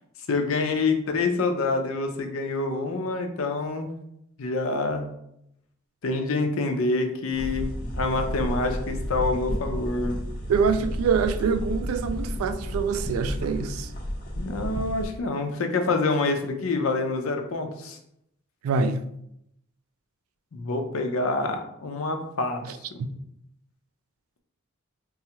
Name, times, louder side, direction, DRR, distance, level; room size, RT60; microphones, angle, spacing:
voice 1, 0.3-3.9 4.4-5.1 6.0-10.1 14.4-18.0 20.5-22.6 22.9-23.0, left 3 dB, 70° left, 0.5 m, -26 dB
sound 1, 7.3-15.1, equal, 45° left, 0.9 m, -32 dB
voice 2, 10.5-13.9 18.6-19.0 22.6-22.7 23.0-23.1, right 5 dB, 85° right, 0.3 m, -25 dB
4.0 x 2.3 x 2.8 m
head